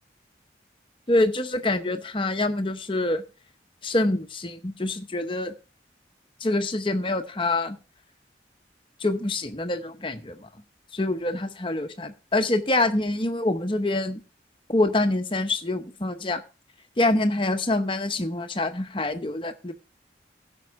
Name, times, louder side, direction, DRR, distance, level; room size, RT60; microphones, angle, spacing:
voice 1, 1.1-3.2 3.8-5.5 6.4-7.8 9.0-10.5 10.9-14.2 14.7-16.4 17.0-19.7, left 2 dB, 30° left, 8 dB, 0.8 m, -25 dB
16.0 x 5.4 x 4.7 m, 0.33 s
head